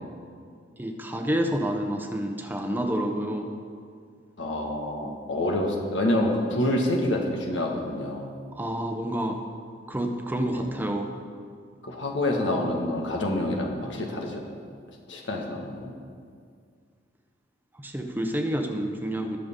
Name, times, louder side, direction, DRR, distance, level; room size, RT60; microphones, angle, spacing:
voice 1, 0.8-3.5 8.5-9.4 9.9-11.1 17.8-19.4, right 1 dB, 10° right, 4 dB, 0.7 m, -28 dB
voice 2, 4.4-8.3 10.5-10.6 11.8-14.4 15.1-15.9, left 1 dB, 85° left, 0 dB, 1.7 m, -27 dB
20.0 x 6.8 x 3.8 m, 2.2 s
head